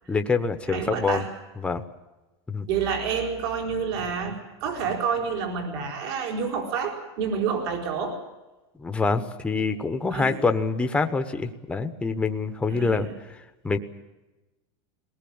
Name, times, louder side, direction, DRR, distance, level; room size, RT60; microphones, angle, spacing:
voice 1, 0.1-1.2 1.6-1.8 2.5-2.7 8.8-13.1 13.6-13.8, left 4 dB, 5° left, 7 dB, 1.0 m, -25 dB
voice 2, 0.7-1.3 2.7-8.2 10.1-10.4 12.7-13.1 13.7-13.8, right 6 dB, 60° right, 2 dB, 4.3 m, -28 dB
21.0 x 19.0 x 8.7 m, 1.1 s
supercardioid pair, 150°, 14 cm